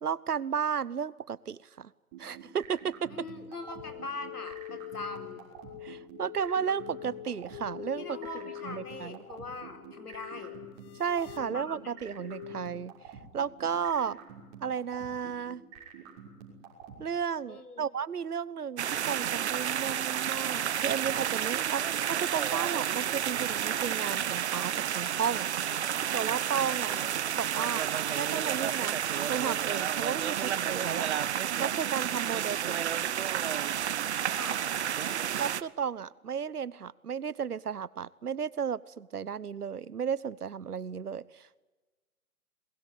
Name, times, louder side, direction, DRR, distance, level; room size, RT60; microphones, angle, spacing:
voice 1, 0.0-1.9 2.2-3.3 5.8-8.2 8.6-9.2 11.0-12.9 13.3-14.2 14.6-15.6 17.0-25.5 26.1-27.0 27.3-27.9 28.2-29.0 29.3-31.1 31.6-32.8 35.4-41.6, right 7 dB, 80° right, 21 dB, 1.1 m, -33 dB
sound 1, 2.1-17.0, right 9 dB, 30° right, 6.1 m, -47 dB
voice 2, 3.1-5.5 8.0-10.6 11.4-11.9 17.5-17.8 26.9-27.1 34.3-34.6, left 3 dB, 85° left, 6 dB, 4.8 m, -42 dB
sound 2, 3.5-12.7, left 13 dB, 15° left, 0.7 m, -45 dB
sound 3, 18.8-35.6, right 9 dB, 45° right, 1.0 m, -31 dB
23.0 x 21.0 x 10.0 m, 1.3 s
figure-of-eight pair, 140°, 45 cm